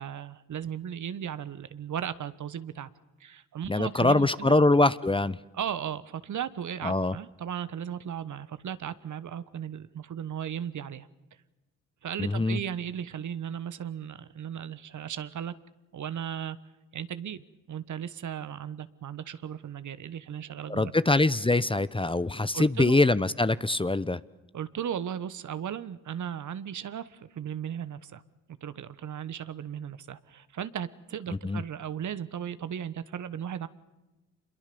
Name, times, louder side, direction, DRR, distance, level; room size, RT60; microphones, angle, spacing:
voice 1, 0.0-2.9 3.2-4.6 5.5-11.1 12.0-15.5 15.9-16.6 16.9-20.9 22.5-23.0 24.5-28.2 28.6-33.7, right 9 dB, 55° right, 15 dB, 1.4 m, -36 dB
voice 2, 3.7-5.4 6.8-7.2 12.2-12.6 20.7-24.2 31.4-31.6, left 2 dB, 15° left, 17 dB, 0.9 m, -23 dB
27.0 x 22.5 x 7.0 m, 1.1 s
hypercardioid pair, 50°, 35 cm